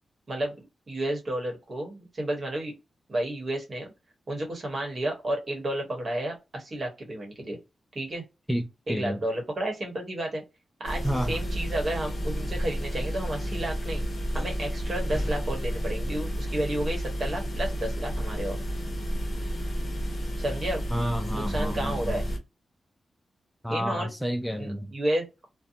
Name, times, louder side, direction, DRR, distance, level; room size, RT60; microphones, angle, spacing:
voice 1, 0.3-2.8 3.1-3.9 4.3-7.6 7.9-8.2 8.9-10.4 10.8-14.0 14.3-18.6 20.4-20.8 21.3-22.2 23.7-24.1 24.6-25.5, right 1 dB, 45° right, 1.1 m, -31 dB
voice 2, 8.5-9.2 11.0-11.4 20.9-22.2 23.6-24.9, equal, ahead, 0.4 m, -30 dB
sound 1, 10.8-22.4, equal, 40° left, 0.8 m, -31 dB
2.6 x 2.1 x 2.7 m
cardioid pair, 95°, 0 cm